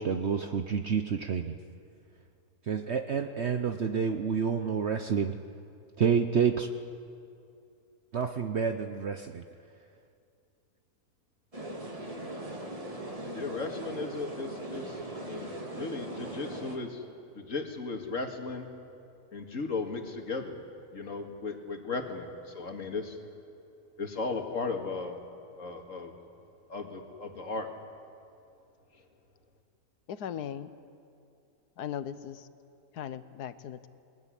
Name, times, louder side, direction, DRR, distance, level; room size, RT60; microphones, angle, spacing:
voice 1, 0.0-1.5 2.7-5.4 6.0-6.7 8.1-9.4, right 6 dB, 50° right, 7 dB, 1.0 m, -29 dB
sound 1, 11.5-16.8, right 1 dB, 20° right, 2.2 m, -39 dB
voice 2, 13.3-17.0 17.4-18.7 19.3-20.6 20.9-23.2 24.0-25.2 25.6-26.1 26.7-27.7, left 3 dB, 55° left, 4 dB, 2.4 m, -36 dB
voice 3, 30.1-30.7 31.8-32.5 32.9-33.9, left 9 dB, 85° left, 13 dB, 1.5 m, -38 dB
22.0 x 20.5 x 10.0 m, 2.5 s
omnidirectional pair, 1.6 m